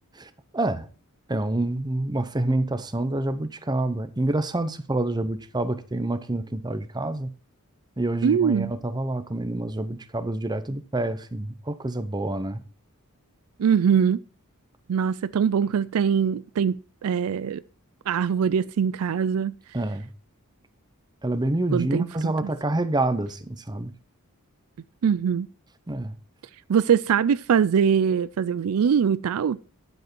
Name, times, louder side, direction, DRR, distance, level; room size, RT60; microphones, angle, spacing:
voice 1, 0.1-0.9 1.3-7.3 8.0-12.6 19.7-20.1 21.2-23.9 25.9-26.2, right 2 dB, 20° right, 0.8 m, -27 dB
voice 2, 8.2-8.7 13.6-14.2 14.9-16.8 17.0-17.6 18.1-19.5 21.7-22.3 25.0-25.5 26.7-29.6, right 7 dB, 70° right, 0.4 m, -22 dB
10.5 x 7.9 x 4.5 m
head